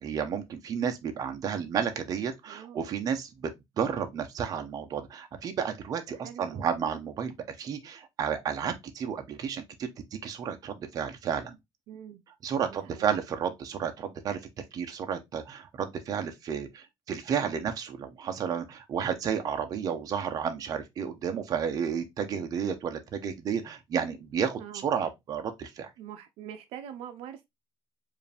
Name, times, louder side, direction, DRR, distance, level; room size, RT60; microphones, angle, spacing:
voice 1, 0.0-3.5 3.8-11.6 12.4-14.4 14.7-25.9, right 7 dB, 35° right, 0.7 m, -32 dB
voice 2, 2.5-2.9 6.1-6.7 11.9-12.2 12.7-13.2 24.6-24.9 26.0-27.4, right 10 dB, 75° right, 0.6 m, -44 dB
4.7 x 2.7 x 3.3 m
cardioid pair, 165°, 10 cm